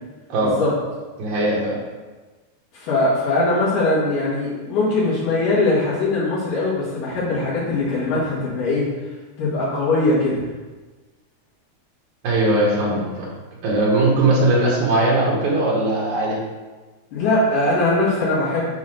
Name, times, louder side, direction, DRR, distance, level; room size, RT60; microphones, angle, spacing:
voice 1, 1.2-1.8 12.2-13.3 13.6-16.4, right 2 dB, 75° right, -5 dB, 2.5 m, -19 dB
voice 2, 2.7-8.9 9.4-10.4 17.1-18.8, left 2 dB, 80° left, -9 dB, 3.1 m, -21 dB
9.2 x 4.3 x 3.2 m, 1.3 s
omnidirectional pair, 3.6 m